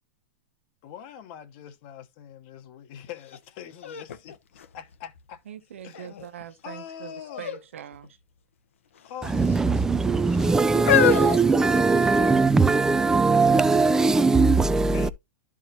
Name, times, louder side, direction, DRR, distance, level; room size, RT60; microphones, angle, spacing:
voice 1, 0.8-4.4 4.7-5.4 5.8-6.1 6.6-7.5 9.0-10.3 11.5-12.4 14.9-15.1, left 9 dB, 50° left, 1.1 m, -43 dB
sound 1, 3.3-3.4 3.8-5.3 5.9-6.4 7.3-7.6 7.9-8.1 8.9-9.6 10.3-12.3 13.1-13.2, left 10 dB, 90° left, 1.0 m, -27 dB
voice 2, 5.4-8.2, right 9 dB, 85° right, 1.1 m, -42 dB
voice 3, 9.2-15.1, right 4 dB, 10° right, 0.4 m, -20 dB
11.5 x 4.8 x 2.9 m
hypercardioid pair, 135°, 7 cm